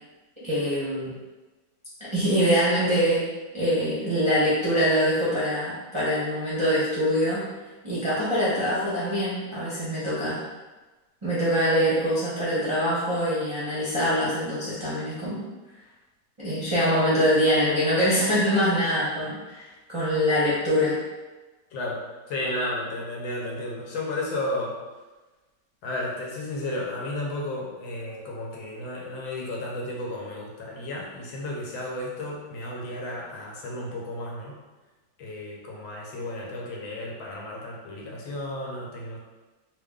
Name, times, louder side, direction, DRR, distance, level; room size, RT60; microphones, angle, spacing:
voice 1, 0.4-1.1 2.1-3.2 3.5-7.4 7.8-10.4 11.2-15.4 16.4-21.0, equal, 30° right, -11 dB, 0.5 m, -24 dB
voice 2, 21.7-24.8 25.8-34.6 35.2-39.2, left 1 dB, 85° left, -2 dB, 1.5 m, -33 dB
3.4 x 2.4 x 3.5 m, 1.2 s
omnidirectional pair, 2.1 m